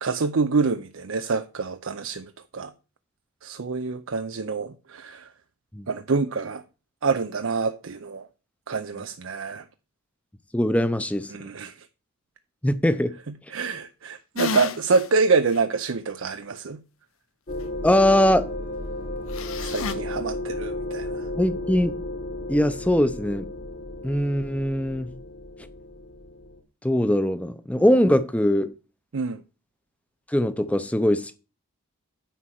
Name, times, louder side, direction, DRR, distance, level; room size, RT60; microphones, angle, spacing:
voice 1, 0.0-2.7 3.4-5.3 5.9-6.6 7.0-8.3 8.7-9.6 11.3-11.9 13.5-16.8 19.6-21.3 29.1-29.4, right 4 dB, 60° right, 0.5 m, -26 dB
voice 2, 10.5-11.3 12.6-13.1 17.8-18.5 21.4-22.0 22.5-23.5 24.0-25.1 26.8-28.7 30.3-31.4, equal, 5° left, 0.6 m, -21 dB
sound 1, 14.4-15.1 15.5-15.6 19.3-19.9, left 4 dB, 65° left, 0.8 m, -30 dB
sound 2, 17.5-26.6, left 1 dB, 40° left, 1.3 m, -34 dB
10.0 x 4.3 x 7.7 m
head